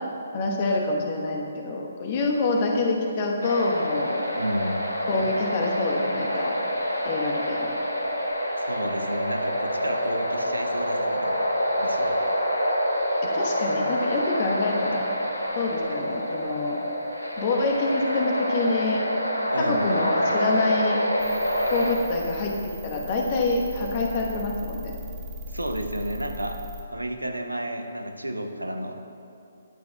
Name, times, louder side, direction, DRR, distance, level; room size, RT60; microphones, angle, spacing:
voice 1, 0.3-4.2 5.1-6.5 7.0-7.7 13.3-15.0 15.5-16.8 17.4-19.0 19.6-21.0 21.7-22.5 22.8-25.0, left 3 dB, 35° left, 0 dB, 1.1 m, -26 dB
sound 1, 3.4-21.9, equal, 85° left, 1.0 m, -27 dB
voice 2, 4.4-4.8 8.6-11.4 11.8-12.2 19.5-19.9 25.5-26.6 26.9-29.1, right 1 dB, 80° right, 6 dB, 0.7 m, -32 dB
sound 2, 21.2-26.8, equal, 10° right, 0.9 m, -39 dB
19.5 x 6.8 x 2.2 m, 2.6 s
figure-of-eight pair, 135°, 0 cm